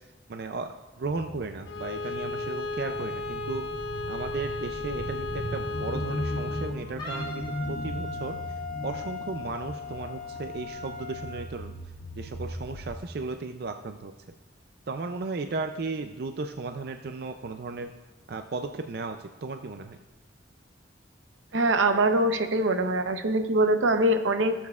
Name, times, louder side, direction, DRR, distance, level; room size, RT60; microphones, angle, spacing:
voice 1, 0.3-0.7 1.0-3.7 4.1-8.4 8.8-11.7 12.2-14.1 14.9-17.9 18.3-20.0, right 3 dB, 55° right, 7 dB, 0.4 m, -35 dB
sound 1, 1.0-13.0, equal, 85° left, 1.4 m, -38 dB
Bowed string instrument, 1.6-6.8, left 3 dB, 60° left, 0.6 m, -34 dB
Wind instrument woodwind instrument, 7.0-11.4, left 4 dB, 25° left, 1.6 m, -38 dB
voice 2, 21.5-24.5, right 1 dB, 85° right, 7 dB, 0.8 m, -23 dB
18.0 x 7.2 x 2.4 m, 1.1 s
head